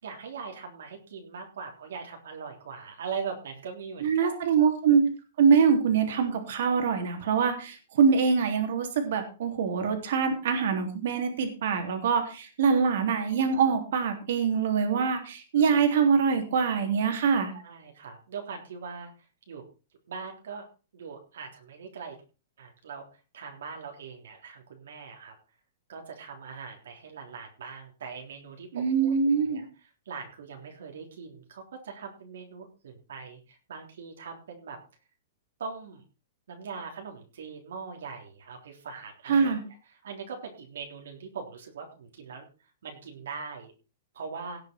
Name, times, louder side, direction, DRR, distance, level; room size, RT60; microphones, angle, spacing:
voice 1, 0.0-4.5 17.5-19.1 19.5-19.6 20.1-20.7 20.9-22.1 22.6-23.1 23.3-25.3 25.9-29.1 29.5-29.7 30.0-34.8 35.6-36.0 36.5-39.5 40.0-42.4 42.8-43.7 44.1-44.6, right 5 dB, 85° right, 1 dB, 3.5 m, -41 dB
voice 2, 4.0-5.0 5.4-17.5 28.7-29.6 39.3-39.6, right 6 dB, 60° right, 5 dB, 3.3 m, -24 dB
17.5 x 6.9 x 4.5 m, 0.34 s
supercardioid pair, 170°, 0 cm